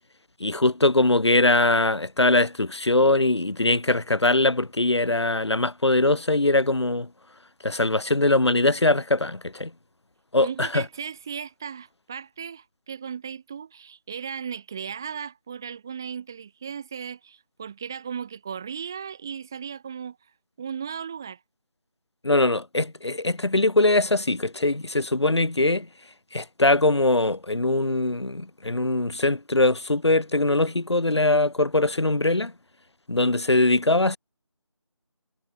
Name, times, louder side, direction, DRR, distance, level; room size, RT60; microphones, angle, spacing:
voice 1, 0.4-7.1 7.6-9.7 10.3-10.8 22.2-25.9 26.3-32.5 33.1-34.2, left 2 dB, 55° left, 2.5 m, -22 dB
voice 2, 10.4-20.2 20.6-21.4, right 7 dB, 5° right, 1.6 m, -36 dB
figure-of-eight pair, 175°, 17 cm